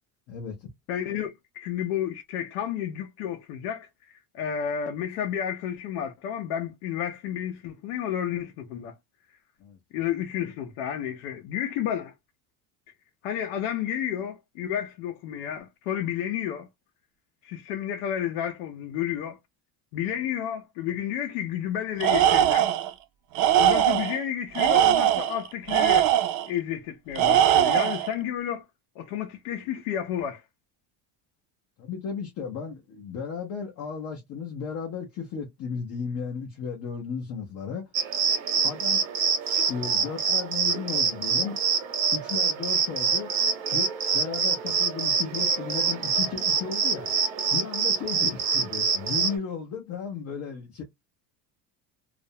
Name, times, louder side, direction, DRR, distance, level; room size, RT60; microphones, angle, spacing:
voice 1, 0.3-0.7 9.6-9.8 31.8-37.9 38.6-39.0 39.7-41.6 42.1-43.3 43.7-47.1 47.5-50.8, left 6 dB, 35° left, 0.5 m, -35 dB
voice 2, 0.9-9.0 9.9-12.1 13.2-16.7 17.4-19.4 19.9-22.7 23.6-26.1 26.5-28.6 29.0-30.4, left 10 dB, 80° left, 0.6 m, -31 dB
Tools, 22.0-22.9 23.3-24.2 24.5-26.5 27.1-28.1, right 11 dB, 55° right, 0.5 m, -21 dB
sound 1, 37.9-49.4, right 6 dB, 90° right, 1.0 m, -26 dB
2.4 x 2.1 x 2.7 m
cardioid pair, 180°, 44 cm